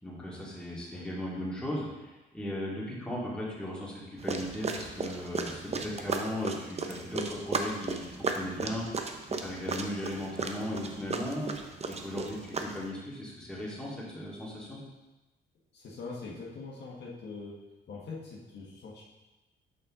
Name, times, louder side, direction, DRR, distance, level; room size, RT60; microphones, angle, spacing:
voice 1, 0.0-8.8 9.3-11.5 11.8-14.8, left 1 dB, 5° left, -6 dB, 2.1 m, -37 dB
sound 1, 4.2-12.9, right 4 dB, 35° right, 0.6 m, -35 dB
voice 2, 15.7-17.6 17.9-19.0, left 4 dB, 60° left, -4 dB, 1.4 m, -42 dB
6.2 x 5.3 x 3.7 m, 1.1 s
cardioid pair, 90°, 20 cm